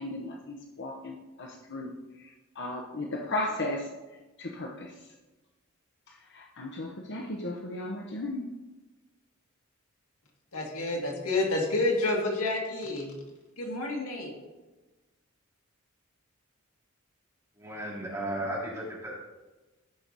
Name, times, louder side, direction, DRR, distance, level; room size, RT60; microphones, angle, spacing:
voice 1, 0.0-3.9 4.4-5.1 6.1-8.5, left 2 dB, 55° left, 1 dB, 1.0 m, -36 dB
voice 2, 10.5-13.1 13.6-14.3, left 2 dB, 70° left, -1 dB, 2.3 m, -29 dB
voice 3, 17.6-19.2, right 1 dB, 15° right, -6 dB, 3.3 m, -35 dB
14.0 x 5.8 x 4.0 m, 1.1 s
head